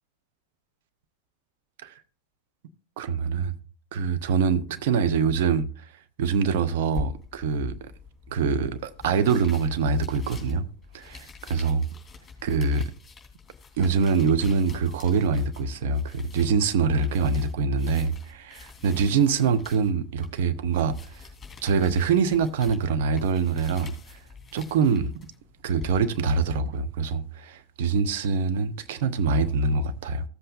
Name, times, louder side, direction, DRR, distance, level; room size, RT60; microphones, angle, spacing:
voice 1, 3.0-3.5 3.9-5.6 6.2-7.9 8.3-10.7 10.9-11.9 12.4-12.9 13.8-21.2 21.6-23.9 24.5-25.1 25.6-30.2, right 5 dB, 50° right, 0.8 m, -24 dB
sound 1, 6.9-26.0, left 4 dB, 10° left, 3.4 m, -45 dB
15.0 x 7.7 x 2.4 m
figure-of-eight pair, 90°, 0 cm